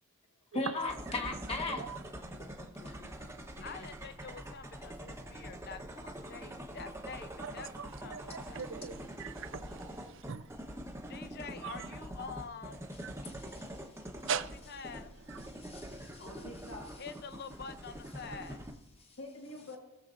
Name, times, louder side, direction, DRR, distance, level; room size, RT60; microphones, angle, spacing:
voice 1, 0.5-1.8 13.2-13.8 14.2-14.3 15.5-16.3, left 3 dB, 25° left, 1.4 m, -38 dB
sound 1, 0.8-18.7, right 1 dB, 10° right, 1.0 m, -45 dB
voice 2, 2.4-3.3 3.6-3.9 16.2-16.9 19.2-19.8, left 1 dB, 65° left, 1.6 m, -48 dB
voice 3, 3.6-7.7 8.0-8.7 11.1-12.9 14.3-15.2 17.0-18.6, left 5 dB, 45° left, 0.7 m, -47 dB
voice 4, 8.1-9.8 10.3-10.4 11.6-11.7 13.0-13.1 14.3-14.4, right 7 dB, 60° right, 0.5 m, -38 dB
18.5 x 7.2 x 2.6 m
head